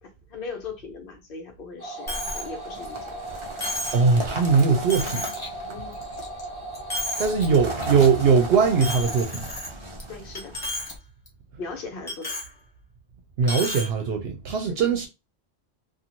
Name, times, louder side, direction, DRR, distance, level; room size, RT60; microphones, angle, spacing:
voice 1, 0.0-3.4 5.7-6.0 10.1-10.6 11.6-12.4 14.6-14.9, left 4 dB, 60° left, 0.9 m, -39 dB
sound 1, 1.8-9.2, right 2 dB, 20° right, 0.8 m, -37 dB
Coin (dropping), 2.1-2.5 2.9-3.0 3.6-4.1 4.6-4.7 4.9-5.5 5.9-6.4 6.7-7.5 7.8-8.1 8.8-10.0 10.4-10.9 11.3-11.4 12.1-12.5 13.4-13.9, left 1 dB, 25° left, 0.9 m, -32 dB
sound 2, 2.1-11.0, right 2 dB, 40° right, 0.5 m, -37 dB
voice 2, 3.9-5.2 7.2-9.5 13.4-15.1, right 5 dB, 75° right, 0.8 m, -20 dB
2.9 x 2.4 x 2.5 m
omnidirectional pair, 1.1 m